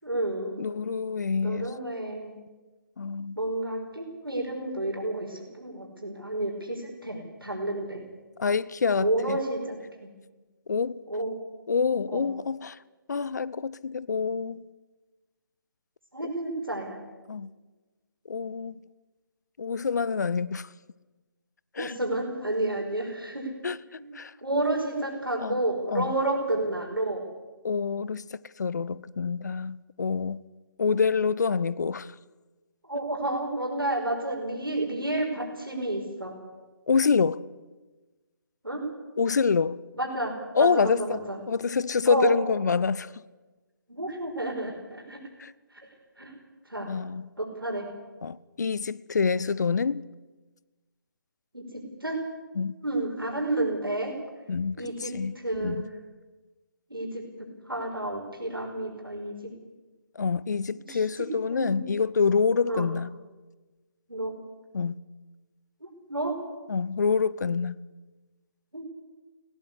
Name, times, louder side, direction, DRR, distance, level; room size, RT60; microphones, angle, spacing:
voice 1, 0.0-0.6 1.4-2.4 3.4-8.0 9.0-10.1 11.1-11.4 12.1-12.3 16.1-17.0 21.8-23.5 24.0-24.1 24.4-27.3 32.8-36.3 38.6-38.8 39.9-40.3 40.6-41.4 42.1-42.4 43.9-45.2 45.7-45.8 46.2-46.3 46.7-46.9 47.4-47.8 51.5-52.2 52.8-54.1 54.8-55.9 56.9-57.2 57.7-59.5 60.8-61.0 61.5-61.9 62.6-62.9 64.1-64.3 65.8-66.3 68.7-68.8, right 1 dB, 85° right, 5.6 m, -30 dB
voice 2, 0.6-1.7 3.0-3.4 8.4-9.4 10.7-11.0 11.7-12.8 13.1-14.6 17.3-17.5 18.3-18.8 19.6-20.7 21.7-22.0 23.6-24.3 25.4-25.6 25.9-26.1 27.6-30.4 30.8-32.1 36.9-37.5 39.2-39.8 40.5-43.1 45.4-45.5 46.9-47.3 48.2-50.0 52.6-52.7 54.5-55.9 60.1-63.1 64.7-65.0 66.7-67.8, left 5 dB, 50° left, 0.8 m, -27 dB
19.0 x 17.5 x 8.4 m
figure-of-eight pair, 145°, 12 cm